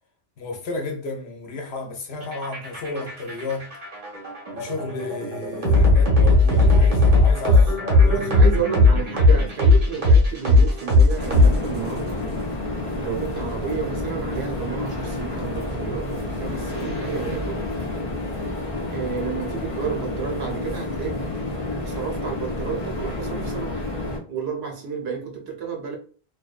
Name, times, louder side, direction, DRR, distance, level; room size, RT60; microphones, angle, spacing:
voice 1, 0.4-3.7 4.5-8.4, left 3 dB, 80° left, 0.9 m, -32 dB
sound 1, 2.2-12.0, left 2 dB, 50° right, 1.1 m, -17 dB
voice 2, 8.1-12.3 13.0-17.7 18.9-21.3 21.8-23.8 24.3-26.0, right 7 dB, 75° right, 1.0 m, -31 dB
sound 2, 11.2-24.2, left 2 dB, 40° left, 0.6 m, -29 dB
2.5 x 2.2 x 2.4 m
omnidirectional pair, 1.1 m